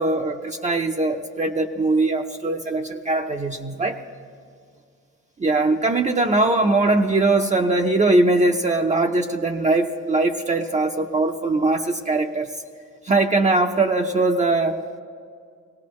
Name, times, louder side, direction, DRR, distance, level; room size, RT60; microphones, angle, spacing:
voice 1, 0.0-4.0 5.4-12.5 13.0-14.8, right 2 dB, 25° right, 3 dB, 0.7 m, -21 dB
21.5 x 17.5 x 3.2 m, 2.2 s
cardioid pair, 90°, 30 cm